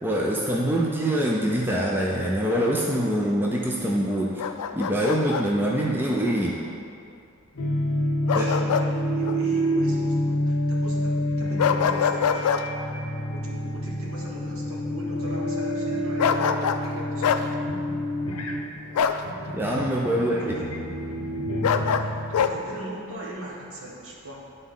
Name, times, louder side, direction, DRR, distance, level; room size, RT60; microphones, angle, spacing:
voice 1, 0.0-4.4 4.7-6.6 8.3-8.5 19.5-20.5, right 1 dB, 10° right, -3 dB, 0.4 m, -24 dB
Bark, 4.4-5.5 8.3-8.9 9.2-9.4 11.6-12.6 16.2-16.9 17.2-17.5 19.0-19.2 21.6-22.5, left 7 dB, 90° left, 0.3 m, -24 dB
sound 1, 7.6-22.7, equal, 70° left, 0.7 m, -28 dB
voice 2, 8.3-12.5 13.3-17.5 20.4-20.7 21.9-24.4, right 1 dB, 70° right, -4 dB, 1.3 m, -41 dB
10.5 x 4.0 x 3.8 m, 2.5 s
head